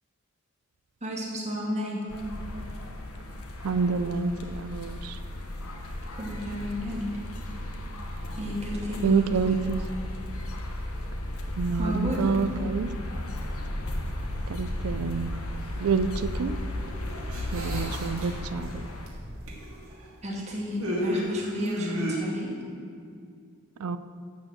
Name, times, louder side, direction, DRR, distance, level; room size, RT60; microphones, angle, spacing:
voice 1, 1.0-2.0 6.1-7.1 8.4-9.3 11.7-12.6 20.2-22.5, left 1 dB, 30° right, -4 dB, 2.3 m, -32 dB
sound 1, 2.1-19.1, left 1 dB, 85° left, 1.1 m, -35 dB
voice 2, 3.6-5.2 9.0-9.8 11.6-12.9 14.5-15.4 15.8-16.6 17.5-18.9 23.8-24.0, right 4 dB, 90° right, 12 dB, 0.4 m, -28 dB
sound 2, 16.9-18.6 19.0-20.1 20.8-22.2, equal, 70° right, 2.1 m, -33 dB
11.5 x 4.5 x 7.6 m, 2.3 s
head